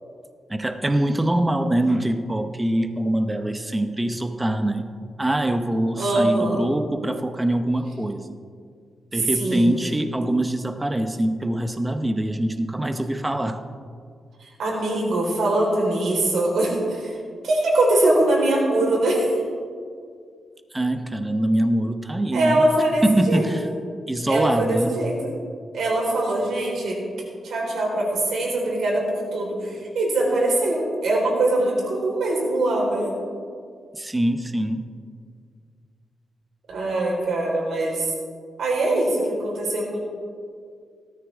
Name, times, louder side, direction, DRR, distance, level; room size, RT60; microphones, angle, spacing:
voice 1, 0.5-4.9 5.2-8.4 9.1-13.6 20.7-22.6 23.0-23.6 24.1-25.0 33.9-34.9, right 1 dB, 10° right, 8 dB, 0.7 m, -23 dB
voice 2, 6.0-6.7 9.4-9.8 14.4-17.2 17.4-19.4 22.3-23.5 24.2-25.3 25.7-27.0 27.4-33.1 36.7-38.1 38.6-40.0, right 1 dB, 80° right, -2 dB, 4.1 m, -22 dB
18.0 x 13.0 x 3.5 m, 2.1 s
wide cardioid pair, 165°, 0 cm